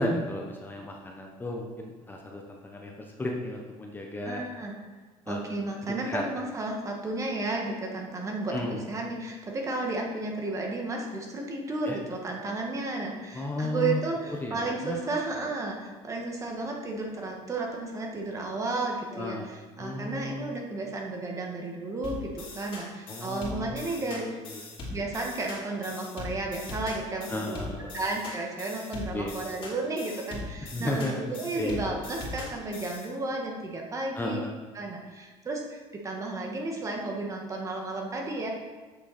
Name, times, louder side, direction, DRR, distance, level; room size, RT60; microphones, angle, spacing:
voice 1, 0.0-4.4 5.3-5.5 5.8-6.2 8.5-8.9 11.8-12.0 13.3-14.0 14.3-15.0 15.4-15.5 19.1-19.5 19.8-20.6 23.1-23.7 24.0-24.6 27.3-28.0 29.1-29.3 30.6-31.2 31.5-31.8 34.1-34.5, left 1 dB, 15° left, 0 dB, 0.9 m, -34 dB
voice 2, 4.2-4.7 5.3-24.2 24.9-27.6 27.9-34.4 34.7-38.5, right 2 dB, 25° right, 0 dB, 1.6 m, -33 dB
sound 1, 22.0-33.1, left 3 dB, 50° left, 2.7 m, -40 dB
7.6 x 6.6 x 4.3 m, 1.3 s
cardioid pair, 125°, 12 cm